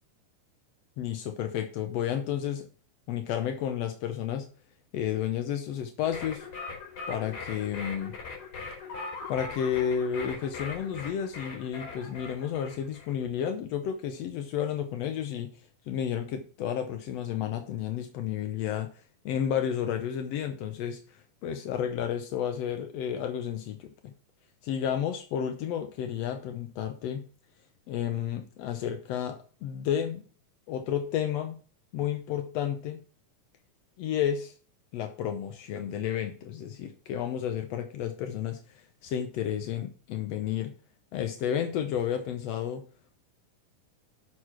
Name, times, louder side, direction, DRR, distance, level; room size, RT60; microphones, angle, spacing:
voice 1, 1.0-2.7 3.1-4.5 4.9-6.5 7.1-8.2 9.3-15.5 15.9-18.9 19.2-24.1 24.6-27.2 27.9-30.2 30.7-31.6 31.9-33.0 34.0-34.5 34.9-40.7 41.1-42.8, left 9 dB, 85° left, 7 dB, 1.4 m, -31 dB
sound 1, 6.0-13.1, left 4 dB, 60° left, 3.7 m, -40 dB
6.5 x 6.4 x 5.8 m, 0.40 s
omnidirectional pair, 3.9 m